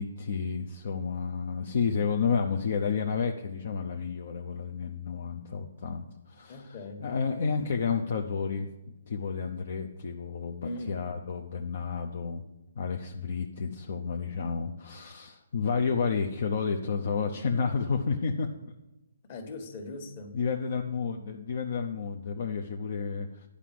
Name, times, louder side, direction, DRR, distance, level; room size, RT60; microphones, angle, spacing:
voice 1, 0.0-8.7 9.1-12.4 12.8-18.5 20.3-23.5, left 5 dB, 55° left, 4 dB, 0.7 m, -31 dB
voice 2, 6.5-7.1 10.6-11.0 19.2-20.4, left 2 dB, 40° left, 5 dB, 1.6 m, -40 dB
9.8 x 5.1 x 7.5 m, 1.0 s
hypercardioid pair, 160°, 0 cm